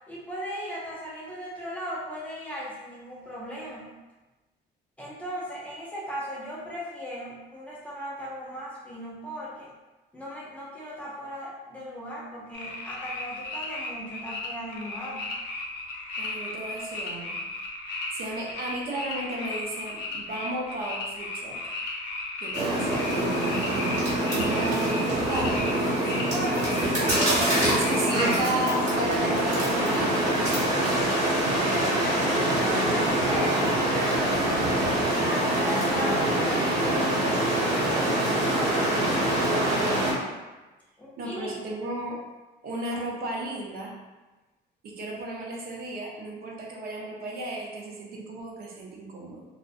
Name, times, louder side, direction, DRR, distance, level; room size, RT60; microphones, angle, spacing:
voice 1, 0.1-3.9 5.0-9.7 10.1-15.2 26.3-26.8 27.2-27.9 31.5-39.1 39.4-39.8 41.0-41.6, equal, 5° left, -7 dB, 0.4 m, -37 dB
sound 1, 12.5-28.4, left 2 dB, 75° left, 0.5 m, -35 dB
voice 2, 16.2-17.4 17.9-21.6 22.4-26.3 26.8-31.0 41.2-42.2 42.6-43.9 44.8-49.5, right 2 dB, 55° right, -2 dB, 0.5 m, -34 dB
sound 2, 22.5-40.1, right 1 dB, 40° right, 1.0 m, -25 dB
2.5 x 2.0 x 2.4 m, 1.2 s
cardioid pair, 160°, 18 cm